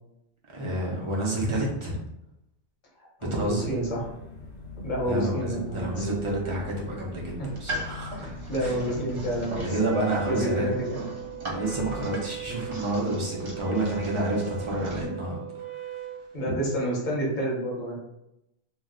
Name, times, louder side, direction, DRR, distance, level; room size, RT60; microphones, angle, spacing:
voice 1, 0.5-2.0 3.3-3.7 5.0-8.2 8.6-8.7 9.6-10.7 11.4-15.4 16.5-16.6, right 1 dB, 45° right, -3 dB, 0.4 m, -29 dB
voice 2, 3.0-4.1 4.8-6.0 7.4-7.5 8.2-9.8 10.2-11.0 12.4-12.6 16.3-18.0, right 1 dB, 45° left, -4 dB, 0.8 m, -29 dB
sound 1, 3.2-9.7, left 3 dB, 70° left, 0.4 m, -42 dB
sound 2, 7.4-15.1, right 1 dB, 70° right, 1.0 m, -39 dB
Wind instrument woodwind instrument, 9.6-16.2, right 11 dB, 5° left, 0.5 m, -38 dB
2.4 x 2.1 x 3.6 m, 0.85 s
omnidirectional pair, 1.3 m